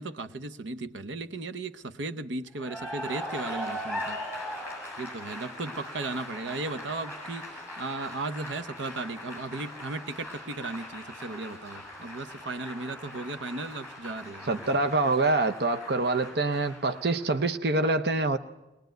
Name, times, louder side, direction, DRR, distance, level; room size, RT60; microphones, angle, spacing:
voice 1, 0.0-4.5 5.0-14.6, right 3 dB, 90° right, 12 dB, 0.8 m, -36 dB
Cheering / Applause, 2.5-17.5, equal, 15° right, 7.6 m, -40 dB
voice 2, 14.5-18.4, right 2 dB, 60° right, 8 dB, 0.8 m, -25 dB
21.0 x 20.5 x 9.2 m, 1.0 s
head